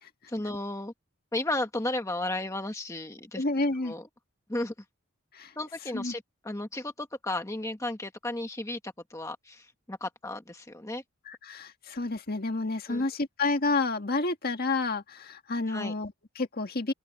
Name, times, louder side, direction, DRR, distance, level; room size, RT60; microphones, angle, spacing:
voice 1, 0.3-0.9 1.3-3.4 3.8-4.0 4.5-4.7 5.6-11.0 12.9-13.1 15.7-15.9, left 2 dB, 15° left, 1.3 m, -34 dB
voice 2, 3.4-3.9 5.3-5.5 5.9-6.1 11.3-16.9, left 3 dB, 45° left, 1.8 m, -30 dB
head